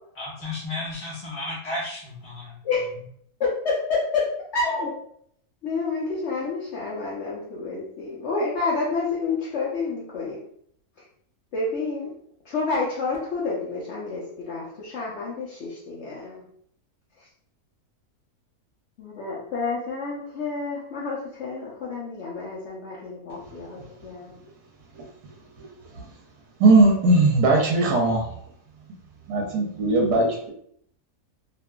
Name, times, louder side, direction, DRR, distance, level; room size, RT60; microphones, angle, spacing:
voice 1, 0.1-2.6, left 2 dB, 10° left, -8 dB, 0.7 m, -33 dB
voice 2, 3.4-4.3 4.5-4.9 5.6-10.4 11.5-12.1 12.5-16.4 19.0-24.3, left 4 dB, 65° left, -4 dB, 0.7 m, -29 dB
voice 3, 26.6-28.2 29.3-30.5, right 2 dB, 85° right, -1 dB, 1.2 m, -19 dB
2.8 x 2.4 x 2.2 m, 0.66 s
omnidirectional pair, 1.7 m